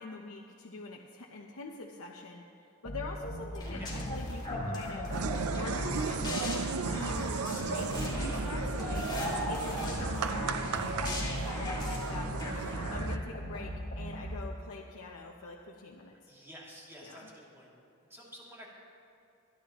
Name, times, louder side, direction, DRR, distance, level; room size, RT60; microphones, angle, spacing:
voice 1, 0.0-2.5 2.8-5.1 5.5-6.3 6.9-9.1 9.5-16.2 17.0-17.2, left 3 dB, 70° left, 0 dB, 0.8 m, -44 dB
sound 1, 2.8-4.4 4.8-7.3 7.8-10.3 10.7-14.5, equal, 50° left, 3.6 m, -39 dB
sound 2, 3.5-13.2, left 1 dB, 20° left, 2.5 m, -38 dB
voice 2, 3.6-4.0 16.3-17.7 18.1-18.7, equal, 10° right, -5 dB, 2.6 m, -50 dB
sound 3, 5.1-13.2, right 5 dB, 90° right, 0.5 m, -35 dB
25.5 x 10.5 x 3.0 m, 2.8 s
head